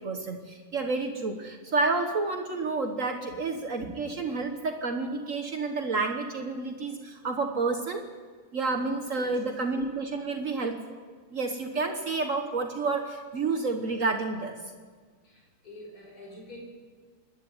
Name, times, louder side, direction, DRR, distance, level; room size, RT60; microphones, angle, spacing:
voice 1, 0.0-8.0 8.5-10.8 11.3-14.5, right 3 dB, 60° right, 4 dB, 1.6 m, -30 dB
voice 2, 15.2-16.6, left 1 dB, 90° left, -2 dB, 5.4 m, -46 dB
26.0 x 11.0 x 9.6 m, 1.5 s
omnidirectional pair, 1.6 m